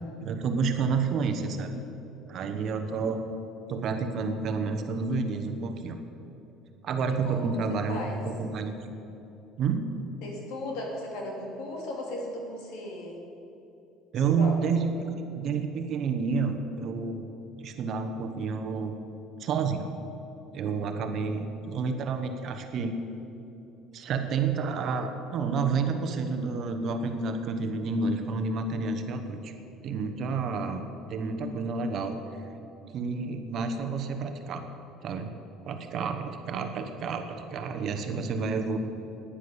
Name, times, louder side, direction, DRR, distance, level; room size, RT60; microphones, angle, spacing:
voice 1, 0.2-1.8 2.3-3.2 3.7-6.0 6.8-8.8 9.6-9.8 14.1-14.8 15.2-17.3 17.6-19.0 19.4-19.9 20.5-23.0 23.9-29.5 29.8-30.8 31.1-32.2 32.9-34.7 35.0-35.3 35.7-38.8, right 5 dB, 40° right, 6 dB, 1.0 m, -29 dB
voice 2, 7.7-8.2 10.2-13.2 14.2-14.5, left 1 dB, 75° left, 0 dB, 3.1 m, -36 dB
10.5 x 10.0 x 8.0 m, 2.9 s
cardioid pair, 175°, 0 cm